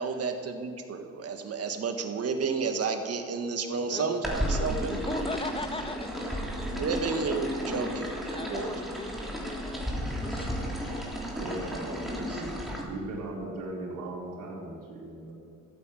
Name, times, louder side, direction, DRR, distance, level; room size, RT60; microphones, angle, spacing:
voice 1, 0.0-5.2 6.7-8.7 12.3-12.4, right 4 dB, 45° right, 5 dB, 1.7 m, -31 dB
voice 2, 3.7-7.1 8.3-9.9 10.1-10.9, left 2 dB, 15° left, 6 dB, 1.5 m, -39 dB
sound 1, 4.2-12.8, equal, ahead, 3.3 m, -33 dB
voice 3, 10.0-10.5 11.3-15.3, right 2 dB, 70° right, -4 dB, 4.3 m, -38 dB
13.5 x 8.7 x 7.6 m, 2.2 s
supercardioid pair, 80°, 33 cm